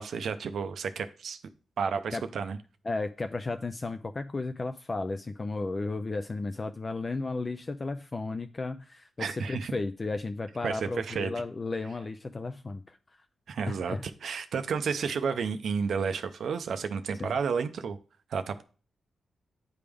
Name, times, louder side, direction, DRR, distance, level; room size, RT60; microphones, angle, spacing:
voice 1, 0.0-1.4 1.8-2.6 9.2-9.7 10.6-11.3 13.5-18.0 18.3-18.6, right 6 dB, 70° right, 9 dB, 0.4 m, -31 dB
voice 2, 2.8-13.0 13.7-14.1 17.2-17.3, left 3 dB, 30° left, 8 dB, 0.3 m, -34 dB
9.6 x 3.5 x 3.4 m, 0.37 s
cardioid pair, 95°, 0 cm